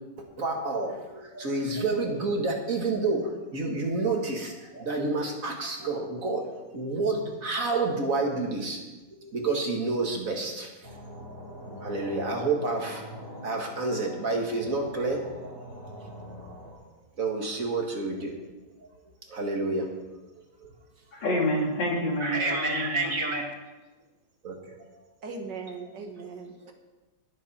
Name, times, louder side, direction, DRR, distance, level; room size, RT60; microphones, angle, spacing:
voice 1, 0.4-8.8 9.2-10.7 11.8-13.0 13.4-15.5 17.2-18.4 19.3-19.9 20.6-20.7 22.2-23.5 24.4-24.5 26.6-26.7, right 3 dB, 50° right, 1 dB, 2.1 m, -29 dB
sound 1, 10.8-16.7, equal, 30° right, 3.7 m, -43 dB
voice 2, 21.1-23.2, left 1 dB, 80° left, -2 dB, 3.2 m, -28 dB
voice 3, 25.2-26.7, right 4 dB, 70° right, 4 dB, 2.0 m, -39 dB
20.5 x 7.6 x 4.4 m, 1.1 s
omnidirectional pair, 1.9 m